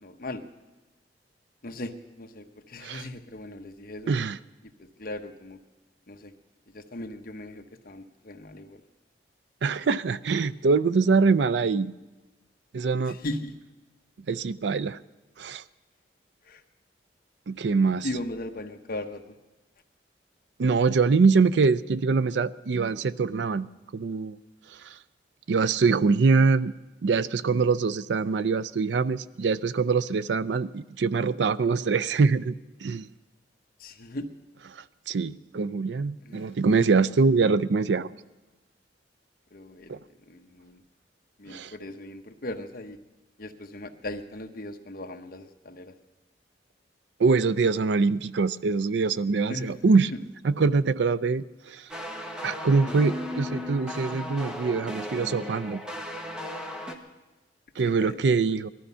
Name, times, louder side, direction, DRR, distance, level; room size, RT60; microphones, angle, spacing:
voice 1, 0.0-0.4 1.6-4.1 4.8-5.6 6.1-6.3 6.7-8.8 13.1-13.5 16.5-16.6 18.0-19.2 33.8-34.3 36.2-36.9 39.5-40.0 40.3-40.8 41.4-43.0 43.4-45.9 49.5-49.9 57.8-58.2, left 1 dB, 55° left, 5 dB, 1.1 m, -38 dB
voice 2, 4.1-4.4 9.6-11.9 12.7-13.2 14.3-15.0 15.4-15.6 17.5-18.1 20.6-24.4 24.8-25.0 25.5-26.7 27.0-32.5 32.8-33.1 34.7-38.1 39.9-40.0 41.5-41.7 47.2-50.1 50.4-51.9 52.4-55.8 57.8-58.7, right 4 dB, 80° right, 17 dB, 0.5 m, -24 dB
sound 1, 51.9-57.0, left 1 dB, 5° right, 1.2 m, -36 dB
19.0 x 13.0 x 5.6 m, 1.1 s
head